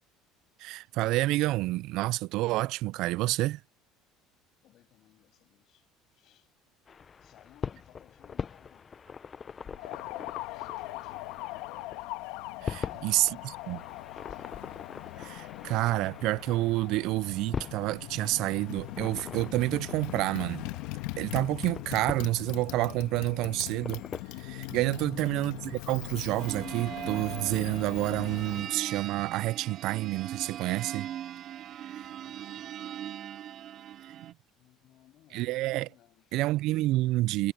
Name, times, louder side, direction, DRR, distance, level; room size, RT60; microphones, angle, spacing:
voice 1, 0.6-3.6 12.6-13.3 13.7-13.8 15.2-20.7 21.2-24.0 24.4-31.1 31.8-32.0 34.1-34.3 35.3-35.9 36.3-37.5, right 18 dB, 65° right, 0.3 m, -29 dB
voice 2, 4.6-6.5 7.2-8.9 9.3-11.8 12.7-14.5 24.9-25.6 32.0-33.5 33.9-34.0 34.6-36.4, left 13 dB, 55° left, 7.3 m, -61 dB
sound 1, 6.9-24.2, left 6 dB, 30° left, 0.6 m, -43 dB
Motorcycle, 9.8-28.7, left 19 dB, 80° left, 1.8 m, -41 dB
sound 2, 26.4-34.3, right 11 dB, 50° right, 2.7 m, -40 dB
cardioid pair, 115°, 0 cm